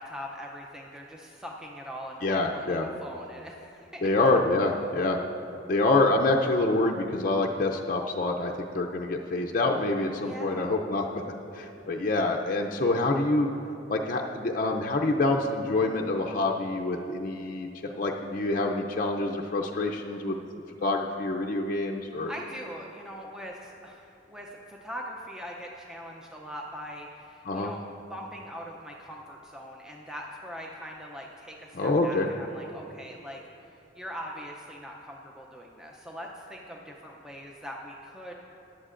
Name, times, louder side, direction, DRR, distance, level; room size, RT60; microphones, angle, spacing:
voice 1, 0.0-4.1 10.2-10.7 22.3-27.8 28.1-38.3, equal, 5° right, -1 dB, 0.5 m, -42 dB
voice 2, 2.2-2.9 4.0-5.2 5.7-11.2 11.5-13.5 13.9-20.4 20.8-22.3 27.4-27.7 31.7-32.3, left 2 dB, 50° left, 1 dB, 0.5 m, -26 dB
14.5 x 10.5 x 2.5 m, 2.8 s
head